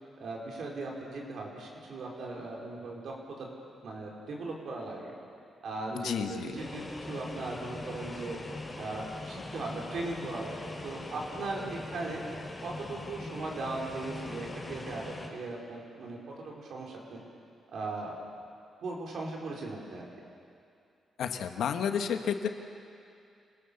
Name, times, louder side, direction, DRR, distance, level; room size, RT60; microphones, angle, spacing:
voice 1, 0.2-3.5 3.8-5.1 5.6-8.4 8.8-12.2 12.6-16.2 16.4-17.2 17.7-18.1 18.8-20.1, right 2 dB, 65° right, -1 dB, 4.8 m, -38 dB
voice 2, 5.9-6.6 21.2-22.5, left 7 dB, 80° left, 6 dB, 1.4 m, -31 dB
sound 1, 6.5-15.3, left 2 dB, 25° left, 7.6 m, -41 dB
27.0 x 17.5 x 7.2 m, 2.5 s
cardioid pair, 95°, 0 cm